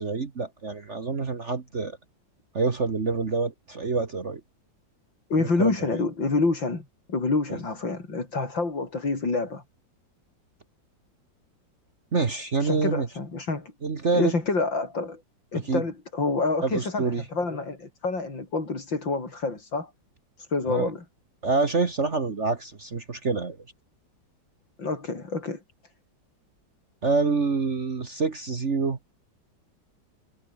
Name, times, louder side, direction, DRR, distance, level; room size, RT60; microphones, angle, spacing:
voice 1, 0.0-2.0 2.5-4.4 5.4-5.7 7.5-7.6 12.1-13.1 13.8-14.4 15.7-15.8 16.6-17.2 20.7-20.9 21.4-23.6 27.0-29.0, right 4 dB, 40° right, 1.8 m, -26 dB
voice 2, 5.3-9.6 12.6-13.7 14.1-15.2 15.5-19.9 20.4-21.0 24.8-25.6, left 3 dB, 70° left, 5.6 m, -27 dB
omnidirectional pair, 2.1 m